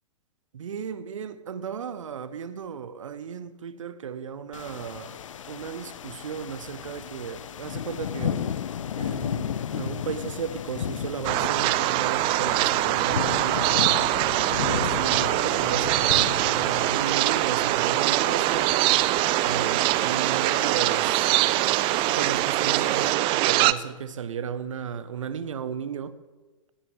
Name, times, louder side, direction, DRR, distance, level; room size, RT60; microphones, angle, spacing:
voice 1, 0.5-8.6 9.0-13.6 14.6-18.8 19.4-21.3 22.1-26.2, right 7 dB, 70° right, 1.0 m, -34 dB
sound 1, 4.5-23.1, left 9 dB, 70° left, 0.7 m, -35 dB
sound 2, 11.2-23.7, right 18 dB, 30° right, 0.4 m, -23 dB
20.5 x 15.0 x 3.4 m
figure-of-eight pair, 105°, 17 cm